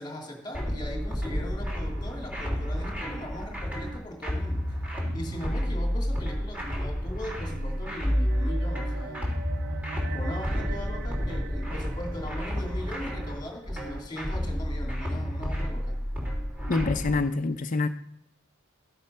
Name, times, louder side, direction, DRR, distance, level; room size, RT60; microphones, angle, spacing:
voice 1, 0.0-4.6 5.1-9.4 10.1-16.0, left 1 dB, 20° left, 1 dB, 2.6 m, -39 dB
sound 1, 0.5-17.1, equal, 5° right, 3.3 m, -30 dB
sound 2, 7.0-13.7, right 5 dB, 50° right, 0.9 m, -44 dB
voice 2, 16.7-17.9, left 3 dB, 40° left, 5 dB, 0.6 m, -26 dB
13.0 x 8.0 x 5.5 m, 0.72 s
head